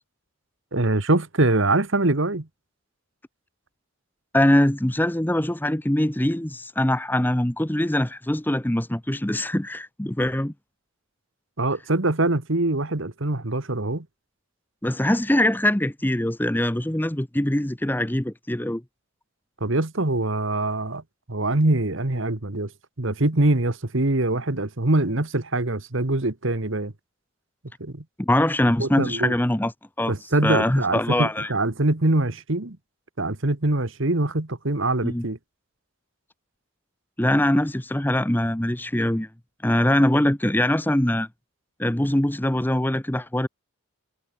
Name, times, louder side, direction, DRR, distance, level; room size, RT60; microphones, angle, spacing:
voice 1, 0.7-2.5 11.6-14.1 19.6-21.0 21.3-22.7 23.0-26.9 27.8-28.0 28.8-29.3 30.1-32.8 33.2-35.4, right 2 dB, 60° right, 1.6 m, -23 dB
voice 2, 4.3-10.5 14.8-18.8 28.2-29.7 30.0-30.1 30.4-31.5 35.0-35.2 37.2-39.3 39.6-41.3 41.8-43.5, left 1 dB, 10° left, 0.8 m, -22 dB
head